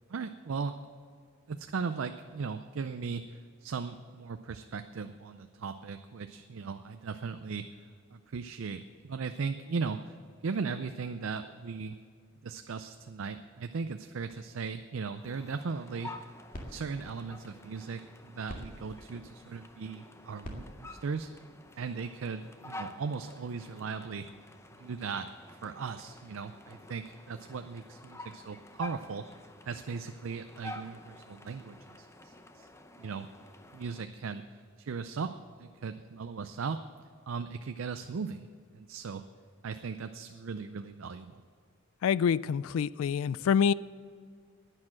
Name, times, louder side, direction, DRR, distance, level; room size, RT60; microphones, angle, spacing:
voice 1, 0.1-0.8 1.5-7.7 8.1-10.0 10.4-12.0 12.4-16.1 16.7-21.3 21.8-24.3 24.8-25.3 25.6-29.3 29.7-32.7 33.0-33.3 33.7-34.4 34.8-35.3 35.6-36.8 37.3-38.5 38.7-39.2 39.6-41.4, right 5 dB, 70° right, 0.5 m, -37 dB
sound 1, 15.1-34.1, left 2 dB, 15° left, 0.6 m, -50 dB
sound 2, 16.0-22.4, equal, 40° left, 2.0 m, -49 dB
voice 2, 42.0-43.7, left 7 dB, 80° left, 0.3 m, -26 dB
11.0 x 9.8 x 7.5 m
head